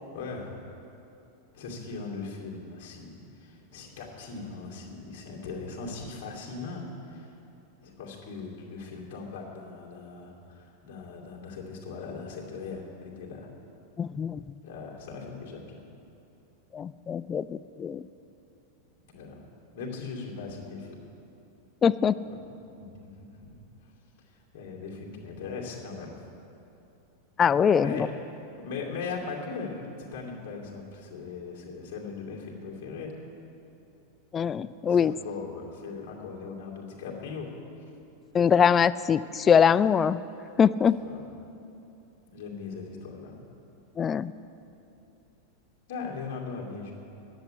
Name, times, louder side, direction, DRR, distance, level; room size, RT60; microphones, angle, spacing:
voice 1, 0.1-0.5 1.5-7.3 7.8-13.5 14.6-15.8 19.1-19.4 19.7-21.0 22.2-22.4 22.8-23.5 24.3-26.2 27.8-28.1 28.5-33.1 34.9-37.5 40.9-41.2 42.3-43.3 45.9-46.9, left 4 dB, 50° left, -2 dB, 2.5 m, -39 dB
voice 2, 14.0-14.4 16.7-18.0 21.8-22.1 27.4-28.1 34.3-35.1 38.3-40.2 40.6-41.0 44.0-44.3, left 7 dB, 20° left, 17 dB, 0.3 m, -22 dB
10.5 x 8.1 x 9.9 m, 2.8 s
figure-of-eight pair, 90°, 0 cm